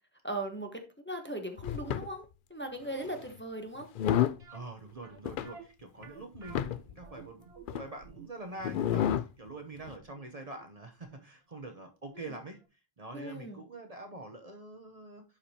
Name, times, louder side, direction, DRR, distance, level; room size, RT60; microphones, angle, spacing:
voice 1, 0.2-0.8 1.0-2.2 2.5-3.9 12.2-12.3 13.1-13.6, right 1 dB, 10° left, 4 dB, 1.1 m, -38 dB
sound 1, 1.6-2.1 3.0-3.3 3.8-4.4 5.3-5.5 6.0-6.1 6.4-6.9 7.7-7.8 8.6-9.3 9.8-9.9, left 10 dB, 60° left, 0.6 m, -30 dB
sound 2, 4.4-11.3 11.5-11.6 12.2-12.3 12.6-12.7, right 6 dB, 85° right, 1.4 m, -53 dB
voice 2, 4.5-7.4 7.8-12.6 13.0-15.2, right 2 dB, 40° right, 4 dB, 1.0 m, -45 dB
11.5 x 5.0 x 2.9 m, 0.29 s
omnidirectional pair, 1.0 m